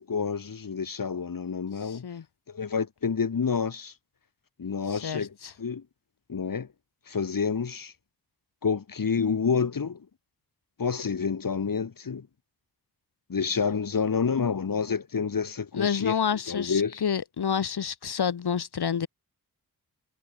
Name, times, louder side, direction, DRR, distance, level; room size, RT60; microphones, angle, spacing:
voice 1, 0.0-2.1 2.5-3.9 4.6-5.8 6.3-6.7 7.1-7.9 8.6-10.0 10.8-12.3 13.3-16.1 16.5-17.0, left 6 dB, 60° left, 2.2 m, -28 dB
voice 2, 1.8-2.2 4.9-5.5 15.7-19.1, left 7 dB, 85° left, 1.8 m, -29 dB
wide cardioid pair, 100°, 38 cm